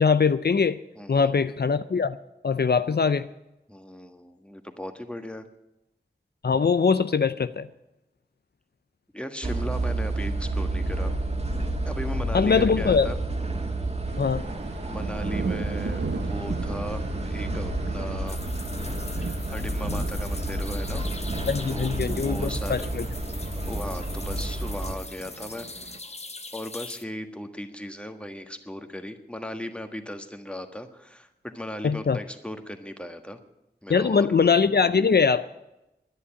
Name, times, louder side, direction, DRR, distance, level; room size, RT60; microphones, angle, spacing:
voice 1, 0.0-0.8 1.1-2.2 2.4-3.3 6.4-7.7 12.3-13.1 14.2-14.4 21.5-23.1 31.8-32.2 33.9-35.4, left 5 dB, 65° left, 12 dB, 0.5 m, -22 dB
voice 2, 0.9-1.3 3.7-5.4 9.1-11.1 11.8-13.2 14.8-18.4 19.2-21.0 21.7-23.0 23.6-25.7 26.5-33.4 33.8-34.3, left 1 dB, 5° left, 7 dB, 1.5 m, -37 dB
sound 1, 9.4-24.9, right 1 dB, 35° right, 1.9 m, -30 dB
sound 2, 14.1-26.0, right 4 dB, 80° right, 0.9 m, -37 dB
sound 3, 18.3-27.0, left 2 dB, 35° left, 0.9 m, -42 dB
11.0 x 10.0 x 9.9 m, 0.93 s
wide cardioid pair, 65°, 18 cm